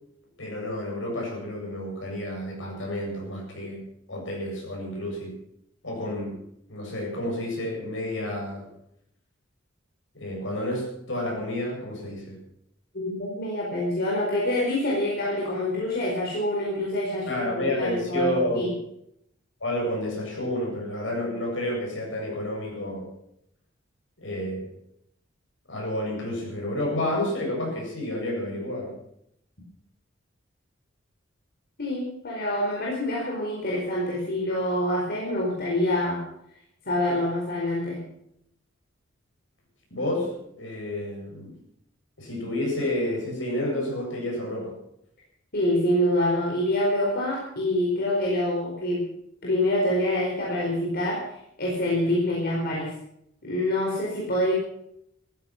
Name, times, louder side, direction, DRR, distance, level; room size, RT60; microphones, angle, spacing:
voice 1, 0.4-5.3 5.8-6.4 6.7-8.7 10.1-12.4 17.2-18.6 19.6-23.1 24.2-24.7 25.7-29.0 39.9-41.6 42.2-44.8, left 1 dB, 75° left, -1 dB, 7.7 m, -30 dB
voice 2, 12.9-18.7 31.8-36.2 36.8-38.0 45.5-49.0 49.4-51.2 51.6-52.9 53.4-54.5, left 1 dB, 55° left, -4 dB, 4.7 m, -26 dB
15.5 x 15.0 x 6.0 m, 0.76 s
head